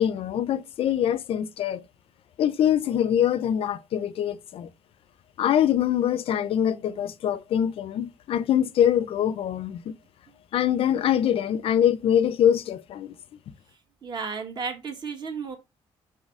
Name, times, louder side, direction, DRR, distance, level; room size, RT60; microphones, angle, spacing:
voice 1, 0.0-1.8 2.4-4.7 5.4-9.9 10.5-13.1, left 10 dB, 60° left, 0.4 m, -24 dB
voice 2, 14.0-15.6, right 5 dB, 45° right, 1.8 m, -33 dB
5.6 x 4.0 x 4.7 m
cardioid pair, 145°, 11 cm